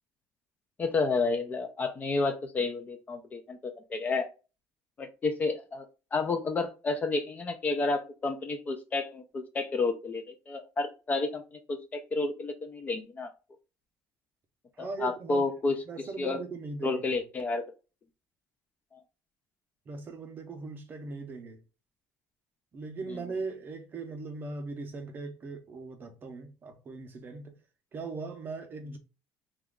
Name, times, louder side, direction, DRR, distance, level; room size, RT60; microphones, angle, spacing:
voice 1, 0.8-4.3 5.0-5.9 6.1-13.3 14.8-15.8 16.2-16.4 16.8-17.6 18.9-19.0 23.1-23.2, left 3 dB, 25° left, 0.4 m, -31 dB
voice 2, 14.8-15.5 15.9-17.1 19.9-21.6 22.7-27.6 27.9-29.0, right 3 dB, 30° right, 0.6 m, -39 dB
2.9 x 2.3 x 3.6 m
cardioid pair, 155°, 7 cm